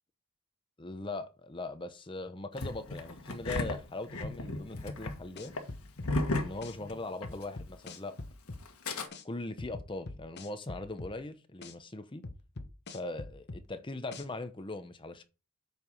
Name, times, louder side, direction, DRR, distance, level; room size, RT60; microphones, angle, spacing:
voice 1, 0.8-5.5 6.4-8.2 9.2-12.2 12.9-15.2, left 2 dB, 20° left, 0.8 m, -40 dB
Engine starting, 2.6-7.4 7.7-7.8 8.6-9.1, left 2 dB, 75° left, 1.5 m, -35 dB
sound 1, 4.7-6.1 6.6-6.7 7.2-8.6 9.1-9.2 9.6-11.1 11.6-11.7 12.2-13.6 14.1-14.2, left 2 dB, 50° left, 0.9 m, -43 dB
8.1 x 5.0 x 5.5 m
head